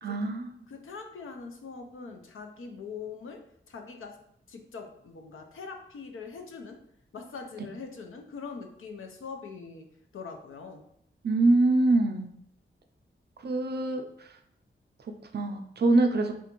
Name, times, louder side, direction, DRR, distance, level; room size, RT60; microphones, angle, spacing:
voice 1, 0.0-0.5 7.6-7.7 11.2-12.3 13.4-14.4 15.0-16.3, right 2 dB, 50° right, 5 dB, 0.4 m, -25 dB
voice 2, 0.7-4.2 4.5-6.8 7.1-10.8, left 5 dB, 75° left, 4 dB, 0.5 m, -42 dB
3.4 x 2.5 x 2.9 m, 0.72 s
wide cardioid pair, 85°, 21 cm